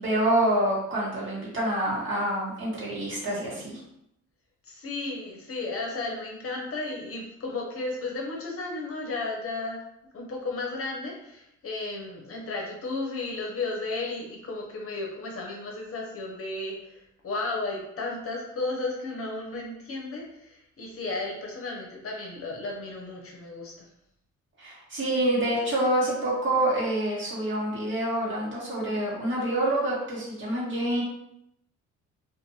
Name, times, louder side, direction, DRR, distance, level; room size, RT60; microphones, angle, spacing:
voice 1, 0.0-3.8 24.6-31.0, right 1 dB, 40° right, -6 dB, 1.4 m, -27 dB
voice 2, 4.6-9.8 10.1-23.7, left 3 dB, 50° left, -1 dB, 0.8 m, -34 dB
2.5 x 2.5 x 2.8 m, 0.79 s
cardioid pair, 90°, 30 cm